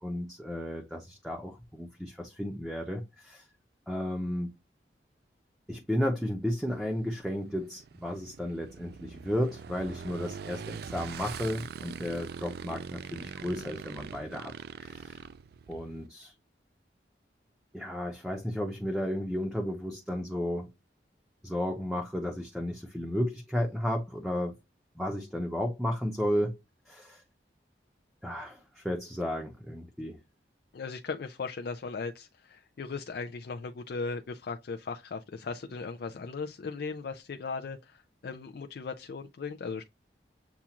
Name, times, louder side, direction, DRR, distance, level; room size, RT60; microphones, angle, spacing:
voice 1, 0.0-3.4 3.9-4.5 5.7-14.5 14.8-15.2 15.7-16.3 17.7-20.7 21.4-24.6 25.0-26.6 26.9-27.2 28.2-30.2, equal, ahead, 0.7 m, -33 dB
Motorcycle / Engine, 6.4-16.1, right 6 dB, 60° right, 0.3 m, -43 dB
voice 2, 30.7-39.8, left 4 dB, 60° left, 0.4 m, -37 dB
7.1 x 2.4 x 2.9 m
head